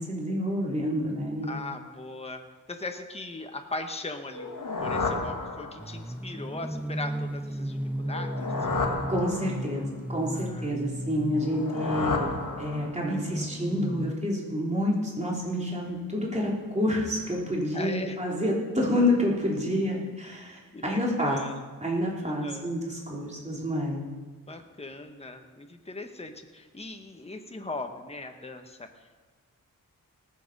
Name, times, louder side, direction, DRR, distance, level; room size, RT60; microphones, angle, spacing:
voice 1, 0.0-1.6 9.1-12.3 12.6-21.4 21.8-24.1, left 1 dB, 20° right, -3 dB, 3.5 m, -28 dB
voice 2, 1.4-2.4 2.7-4.5 4.8-8.5 10.3-10.8 13.0-13.5 17.7-18.2 19.9-20.1 20.7-21.6 22.2-22.8 24.5-29.2, left 2 dB, 20° left, 5 dB, 1.2 m, -39 dB
sound 1, 4.3-6.1 8.0-9.9 11.3-13.2, left 3 dB, 70° left, 1.9 m, -32 dB
sound 2, 5.8-14.1, right 1 dB, 5° right, 0.4 m, -35 dB
18.5 x 7.8 x 5.4 m, 1.4 s
wide cardioid pair, 85°, 33 cm